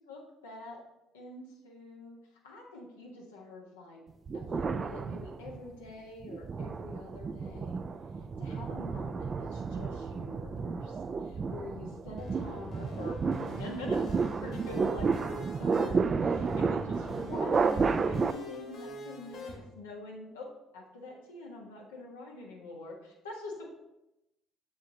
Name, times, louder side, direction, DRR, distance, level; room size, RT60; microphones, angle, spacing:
voice 1, 0.1-0.8 1.1-2.2 2.4-4.0 4.3-7.8 8.4-13.2 13.6-23.6, left 2 dB, 85° left, -2 dB, 1.4 m, -45 dB
sound 1, 4.3-5.7 6.2-18.3, right 5 dB, 40° right, 0.4 m, -32 dB
sound 2, 12.2-19.6, left 1 dB, 60° left, 2.3 m, -44 dB
7.5 x 7.3 x 2.9 m, 0.92 s
hypercardioid pair, 55°, 0 cm